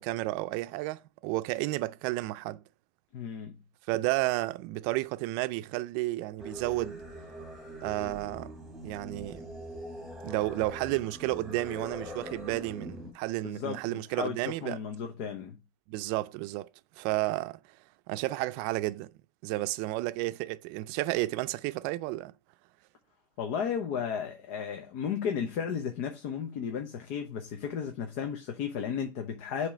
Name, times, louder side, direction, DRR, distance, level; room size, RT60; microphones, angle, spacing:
voice 1, 0.0-2.6 3.9-7.0 7.8-8.5 8.8-9.5 10.2-14.8 15.9-16.7 17.0-17.6 18.1-19.1 19.4-22.3, right 18 dB, 75° right, 0.4 m, -32 dB
voice 2, 3.1-3.6 13.4-15.6 23.4-29.7, left 7 dB, 80° left, 0.9 m, -34 dB
Singing, 6.4-13.1, equal, ahead, 1.8 m, -43 dB
7.4 x 3.0 x 5.0 m
cardioid pair, 135°, 7 cm